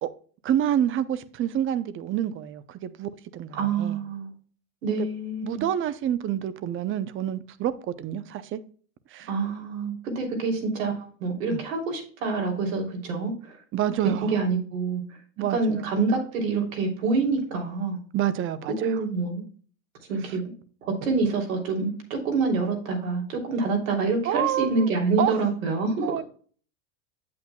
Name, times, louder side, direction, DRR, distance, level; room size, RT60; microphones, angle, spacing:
voice 1, 0.4-4.0 5.0-5.1 5.4-8.6 9.1-9.3 11.5-11.6 13.7-14.4 15.4-15.8 18.1-19.0 24.2-24.9 25.2-25.4 26.0-26.2, right 10 dB, 30° right, 0.7 m, -28 dB
voice 2, 3.5-4.3 4.8-5.6 9.3-13.6 14.2-15.0 15.5-18.0 18.8-19.4 20.1-20.4 20.8-26.1, right 4 dB, 80° right, 3.2 m, -26 dB
8.5 x 8.1 x 2.3 m
supercardioid pair, 115°, 39 cm